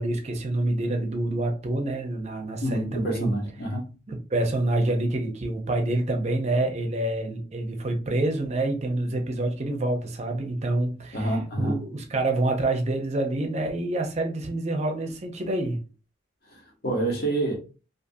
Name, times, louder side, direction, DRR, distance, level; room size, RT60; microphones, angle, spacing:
voice 1, 0.0-3.3 4.1-15.8, right 2 dB, 35° right, 0.5 m, -27 dB
voice 2, 2.6-3.9 11.1-11.8 16.5-17.6, right 1 dB, 55° left, 0.9 m, -28 dB
2.5 x 2.5 x 2.6 m
head